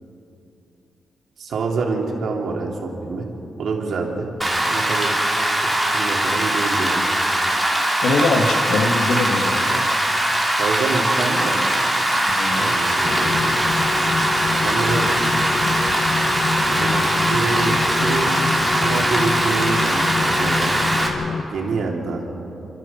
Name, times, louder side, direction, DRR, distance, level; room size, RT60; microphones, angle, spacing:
voice 1, 1.4-3.3 3.6-4.3 4.7-5.2 5.6-7.0 10.6-11.6 12.5-13.6 14.4-15.1 16.7-18.4 18.8-20.7 21.5-22.3, right 4 dB, 70° right, 0 dB, 3.5 m, -26 dB
Rain, 4.4-21.1, right 1 dB, ahead, 2.9 m, -21 dB
voice 2, 8.0-9.9 12.4-12.7, left 2 dB, 85° left, 3 dB, 2.3 m, -22 dB
sound 1, 13.0-21.4, left 4 dB, 45° left, 1.2 m, -26 dB
29.5 x 14.0 x 7.4 m, 3.0 s
wide cardioid pair, 135°, 0 cm